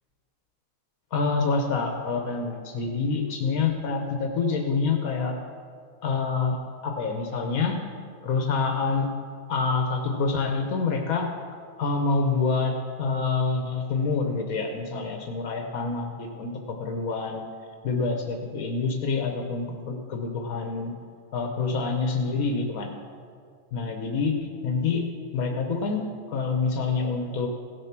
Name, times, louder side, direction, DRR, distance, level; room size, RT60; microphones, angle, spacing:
voice 1, 1.1-5.3 6.0-6.6 6.8-7.8 8.2-9.1 9.5-11.3 11.8-17.5 17.8-20.9 21.3-22.9 23.7-27.5, left 4 dB, 80° left, 3 dB, 1.4 m, -27 dB
16.5 x 6.7 x 5.9 m, 2.1 s
omnidirectional pair, 1.5 m